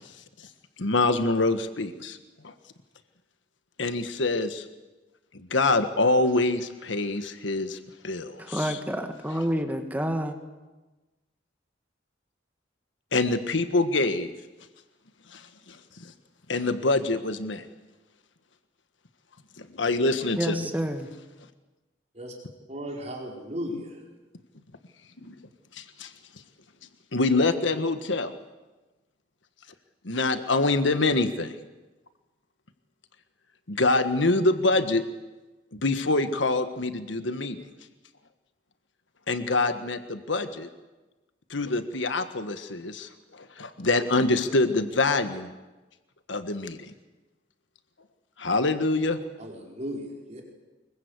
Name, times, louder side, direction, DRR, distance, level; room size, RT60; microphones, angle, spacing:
voice 1, 0.8-2.2 2.4-2.5 3.8-4.6 5.3-7.8 8.0-8.8 13.1-14.3 15.3-15.8 16.5-17.6 19.6-20.7 25.2-25.3 25.7-26.1 27.1-28.3 30.0-31.5 33.7-35.0 35.7-37.6 39.3-40.7 41.5-45.5 46.3-46.9 48.4-49.2, left 2 dB, 80° left, 9 dB, 1.5 m, -25 dB
voice 2, 8.4-10.4 20.4-21.1, equal, 10° right, 6 dB, 1.8 m, -28 dB
voice 3, 22.7-24.1 49.4-50.4, equal, 35° right, 0 dB, 4.9 m, -36 dB
25.0 x 22.5 x 8.3 m, 1.1 s
head